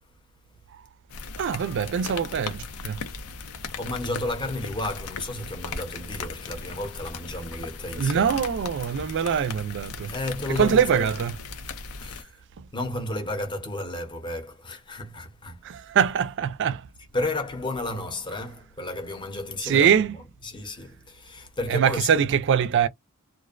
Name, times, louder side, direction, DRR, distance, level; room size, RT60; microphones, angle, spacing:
sound 1, 1.1-12.2, left 4 dB, 85° left, 0.6 m, -37 dB
voice 1, 1.4-3.0 8.0-10.1 10.6-11.3 12.6-12.7 15.6-16.9 19.6-20.1 21.7-22.9, right 7 dB, 55° right, 0.3 m, -23 dB
voice 2, 3.6-8.4 10.1-11.1 12.0-12.3 12.7-15.7 17.1-22.3, left 2 dB, 20° left, 0.7 m, -32 dB
2.5 x 2.1 x 2.4 m
head